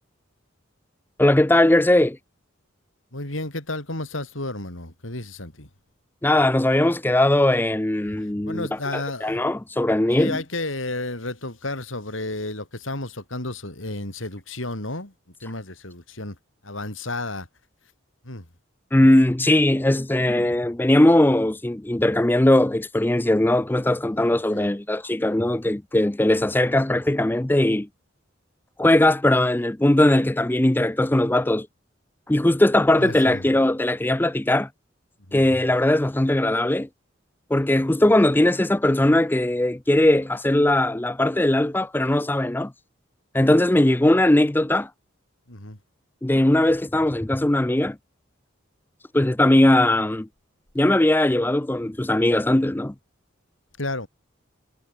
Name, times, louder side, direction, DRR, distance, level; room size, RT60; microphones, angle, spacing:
voice 1, 1.2-2.2 6.2-8.7 8.9-10.4 18.9-27.9 28.8-31.7 32.3-34.7 35.3-36.9 37.5-42.7 43.3-44.9 46.2-48.0 49.1-50.3 50.8-52.9, left 1 dB, 10° left, 0.5 m, -19 dB
voice 2, 3.1-5.7 8.5-9.5 10.1-15.1 15.4-16.4 16.6-17.5 18.2-18.5 24.1-24.7 33.0-33.5 35.3-35.4 45.5-45.8 53.8-54.1, left 2 dB, 80° left, 6.1 m, -32 dB
head